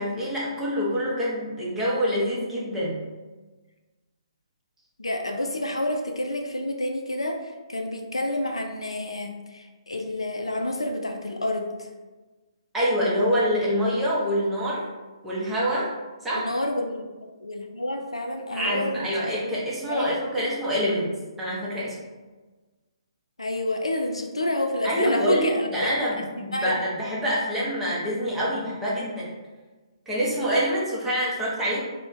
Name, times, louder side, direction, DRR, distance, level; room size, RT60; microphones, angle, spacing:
voice 1, 0.0-3.0 12.7-14.8 15.2-15.9 16.2-16.5 18.5-21.1 21.4-21.9 24.8-29.3 30.1-31.8, equal, 10° right, -7 dB, 0.7 m, -26 dB
voice 2, 5.0-11.9 16.3-19.6 19.9-20.8 23.4-26.2 26.5-26.8, left 1 dB, 80° left, 4 dB, 0.4 m, -29 dB
2.4 x 2.2 x 3.6 m, 1.2 s
figure-of-eight pair, 130°, 3 cm